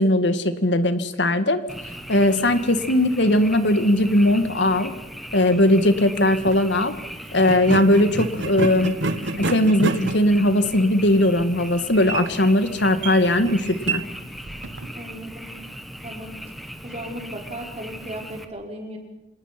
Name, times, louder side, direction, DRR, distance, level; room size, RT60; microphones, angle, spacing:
voice 1, 0.0-1.6 2.1-4.9 5.3-6.9 7.3-8.9 9.5-14.0, left 1 dB, 75° left, 10 dB, 1.8 m, -19 dB
Frog, 1.7-18.4, equal, ahead, 1.6 m, -38 dB
sound 1, 6.3-6.6 7.4-14.9, right 2 dB, 85° right, 1.2 m, -30 dB
voice 2, 14.8-15.5 16.0-16.4 16.8-19.0, right 1 dB, 35° right, 1 dB, 4.7 m, -36 dB
26.5 x 19.0 x 5.9 m, 0.97 s
head